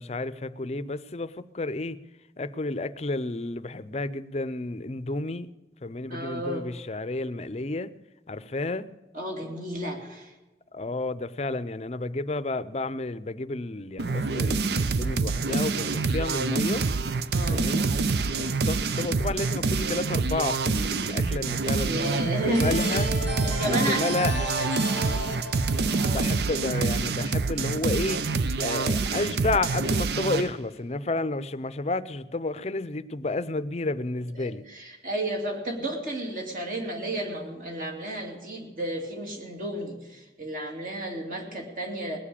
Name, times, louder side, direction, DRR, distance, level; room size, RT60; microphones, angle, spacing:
voice 1, 0.0-2.0 2.4-5.5 5.8-8.0 8.3-8.9 10.7-16.9 17.5-18.0 18.3-23.1 23.6-24.3 26.1-28.3 28.6-34.6, left 2 dB, 35° left, 14 dB, 0.6 m, -31 dB
voice 2, 6.1-6.6 9.1-10.3 17.3-17.7 21.8-22.7 23.3-24.0 26.0-26.3 34.4-42.2, right 1 dB, 45° right, 2 dB, 2.4 m, -32 dB
sound 1, 14.0-30.5, right 4 dB, 65° right, 0.6 m, -26 dB
sound 2, 22.5-27.2, equal, 85° right, 3.5 m, -34 dB
19.5 x 7.4 x 8.5 m, 1.1 s
head